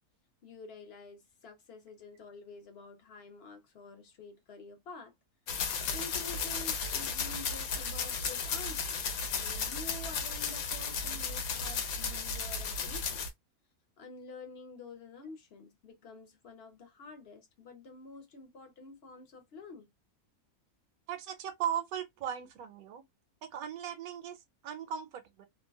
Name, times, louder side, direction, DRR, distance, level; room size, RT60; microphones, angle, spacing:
voice 1, 0.4-5.1 5.9-9.1 9.3-13.2 14.0-19.9, left 3 dB, 55° left, 0.8 m, -49 dB
sound 1, 5.5-13.3, left 5 dB, 80° left, 1.0 m, -34 dB
voice 2, 21.1-23.0 23.4-25.5, right 9 dB, 80° right, 1.0 m, -38 dB
2.6 x 2.2 x 2.3 m
omnidirectional pair, 1.5 m